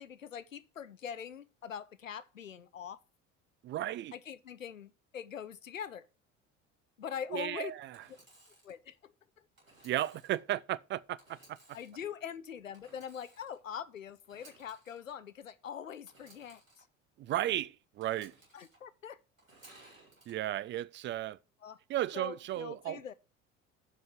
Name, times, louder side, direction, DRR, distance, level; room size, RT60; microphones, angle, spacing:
voice 1, 0.0-3.0 4.1-6.0 7.0-7.7 8.6-9.5 11.7-16.8 18.5-19.2 21.6-21.8 22.1-23.1, left 8 dB, 85° left, 0.7 m, -43 dB
voice 2, 3.6-4.1 7.3-8.0 9.8-11.6 17.2-18.4 20.3-21.4 21.9-23.0, right 13 dB, 30° right, 0.4 m, -34 dB
Engine / Sawing, 7.9-8.8 9.6-10.4 11.2-12.0 12.7-13.6 14.2-15.0 16.0-16.8 18.0-18.8 19.4-20.3, right 2 dB, 85° right, 2.9 m, -60 dB
7.8 x 5.4 x 7.4 m
figure-of-eight pair, 60°, 39 cm